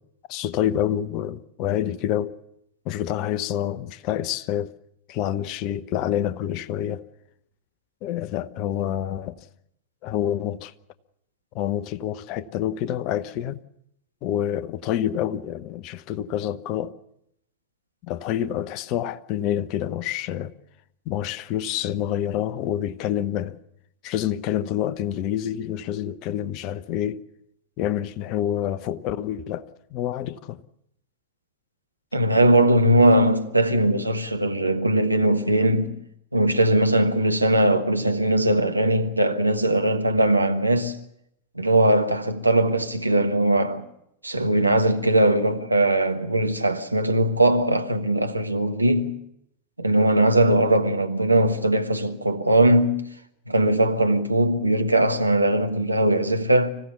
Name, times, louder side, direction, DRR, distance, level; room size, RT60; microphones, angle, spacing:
voice 1, 0.3-2.4 2.8-4.7 5.1-7.0 8.0-9.5 10.0-10.7 11.5-13.6 14.2-16.9 18.0-20.5 21.1-23.5 24.0-27.2 27.8-30.6, left 11 dB, 40° left, 0.9 m, -27 dB
voice 2, 32.1-35.9 36.3-41.0 41.5-43.9 44.2-49.2 49.8-53.0 53.5-56.7, right 1 dB, 85° right, 1.4 m, -20 dB
26.0 x 16.0 x 7.0 m
figure-of-eight pair, 90°, 0 cm